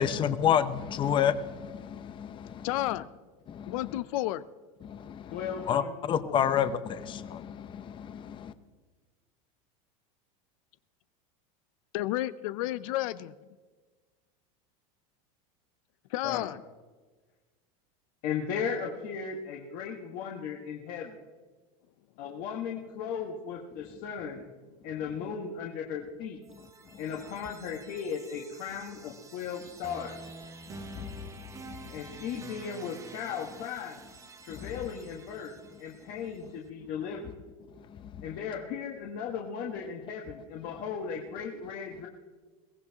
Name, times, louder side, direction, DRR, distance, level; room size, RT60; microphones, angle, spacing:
voice 1, 0.0-2.7 3.5-3.8 4.8-8.5 30.7-31.3 34.5-34.7 38.0-38.1, left 8 dB, 30° left, 12 dB, 0.8 m, -30 dB
voice 2, 2.6-3.1 3.7-4.4 11.9-13.3 16.1-16.6, left 15 dB, 75° left, 15 dB, 0.5 m, -31 dB
voice 3, 5.3-5.9 6.2-6.4 16.2-16.5 18.2-21.2 22.2-24.4 24.8-26.4 27.0-30.1 31.9-34.0 34.4-35.5 35.8-37.3 38.2-42.1, left 7 dB, 55° left, 0 dB, 1.6 m, -36 dB
sound 1, 26.4-36.4, right 4 dB, 20° right, 0.9 m, -49 dB
22.0 x 17.0 x 2.9 m, 1.4 s
supercardioid pair, 140°, 18 cm